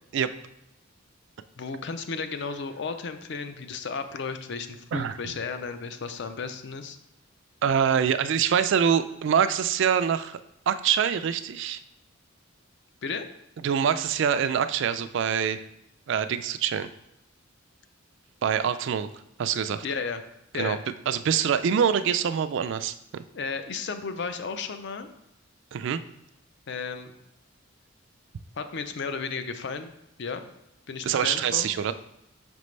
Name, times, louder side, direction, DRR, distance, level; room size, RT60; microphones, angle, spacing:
voice 1, 1.6-7.0 13.0-13.3 19.8-20.2 20.5-20.8 23.3-25.1 26.7-27.1 28.6-29.9 30.2-30.4 30.9-31.7, left 5 dB, 55° left, 9 dB, 0.5 m, -33 dB
voice 2, 7.6-10.4 10.7-11.8 13.6-15.6 16.1-16.9 18.4-19.1 19.4-19.8 20.6-20.8 21.1-23.2 25.7-26.0 31.0-31.9, right 8 dB, 60° right, 12 dB, 0.3 m, -25 dB
5.8 x 5.3 x 3.2 m, 0.82 s
head